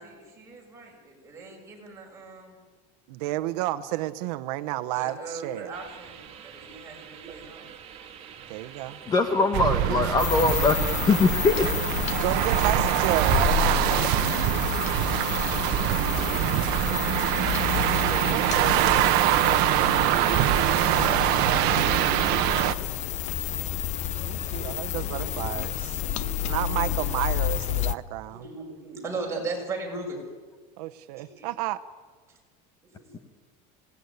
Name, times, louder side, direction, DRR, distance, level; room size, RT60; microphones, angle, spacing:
voice 1, 0.0-2.6 4.9-7.7 14.8-16.4 16.8-16.9 17.7-18.8 20.8-22.9 23.8-25.6 26.0-26.9 28.3-30.2 31.1-31.5 32.3-32.4 32.8-33.2, right 3 dB, 15° right, -1 dB, 6.5 m, -39 dB
voice 2, 3.1-5.7 8.5-9.0 12.1-14.1 18.3-20.0 24.2-26.0 26.4-28.4 30.8-31.8, right 16 dB, 80° right, 12 dB, 1.1 m, -31 dB
sound 1, 5.7-13.7, right 7 dB, 30° right, 3.1 m, -42 dB
voice 3, 9.1-11.7 13.9-14.0, left 3 dB, 20° left, 7 dB, 1.2 m, -22 dB
sound 2, 9.5-22.7, right 15 dB, 55° right, 1.2 m, -24 dB
sound 3, 10.2-27.9, left 12 dB, 35° left, 0.8 m, -30 dB
27.0 x 18.5 x 9.7 m, 1.5 s
cardioid pair, 170°, 20 cm